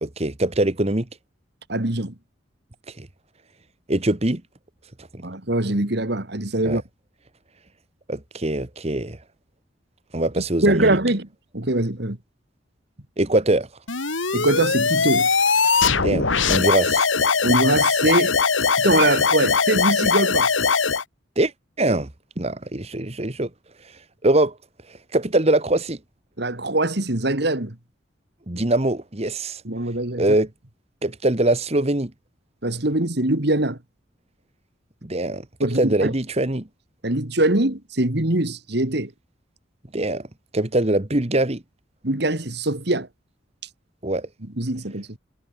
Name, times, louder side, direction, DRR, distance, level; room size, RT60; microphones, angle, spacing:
voice 1, 0.0-1.0 3.0-3.1 3.9-4.4 6.6-6.8 8.1-9.2 10.1-11.0 13.2-13.7 16.0-17.1 21.4-21.5 21.8-22.1 22.4-23.5 23.8-24.5 24.9-26.0 28.5-29.6 30.2-30.5 31.0-32.1 35.0-36.6 39.9-40.2 40.5-41.6 44.0-44.3, right 1 dB, 35° right, 1.6 m, -22 dB
voice 2, 1.7-2.1 5.2-6.8 10.6-11.3 11.5-12.2 14.3-15.3 17.4-18.3 18.8-20.5 26.4-27.7 28.5-28.6 29.6-30.3 32.6-33.8 35.6-36.1 37.0-39.1 42.0-43.1 44.6-45.2, right 1 dB, 60° right, 2.5 m, -22 dB
sound 1, 13.9-21.0, left 5 dB, 85° left, 2.7 m, -20 dB
head